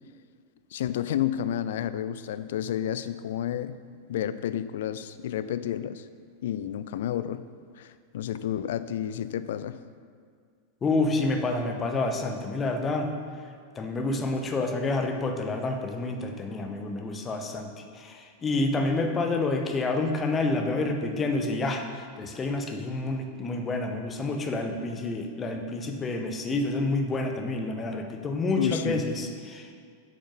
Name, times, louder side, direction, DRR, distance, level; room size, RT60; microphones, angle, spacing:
voice 1, 0.7-3.8 4.1-6.1 6.4-7.4 7.8-9.8 28.5-29.0, left 10 dB, 55° left, 13 dB, 0.4 m, -30 dB
voice 2, 10.8-13.2 13.8-29.7, left 2 dB, 20° left, 4 dB, 0.9 m, -28 dB
8.7 x 5.2 x 5.4 m, 2.1 s
figure-of-eight pair, 90°, 0 cm